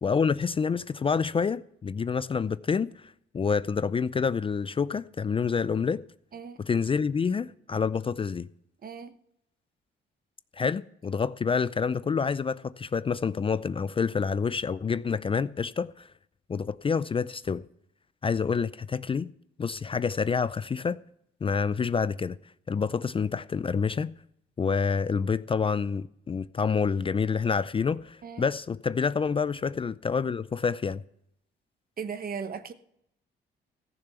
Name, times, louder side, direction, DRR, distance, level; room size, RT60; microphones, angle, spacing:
voice 1, 0.0-6.0 6.6-8.5 10.5-16.1 16.5-17.6 18.2-19.3 19.6-21.0 21.4-22.4 22.7-24.1 24.6-31.0, left 5 dB, 25° left, 0.4 m, -28 dB
voice 2, 8.8-9.2 28.2-28.5 32.0-32.7, right 6 dB, 45° right, 1.1 m, -37 dB
15.0 x 6.9 x 6.9 m
cardioid pair, 90°, 20 cm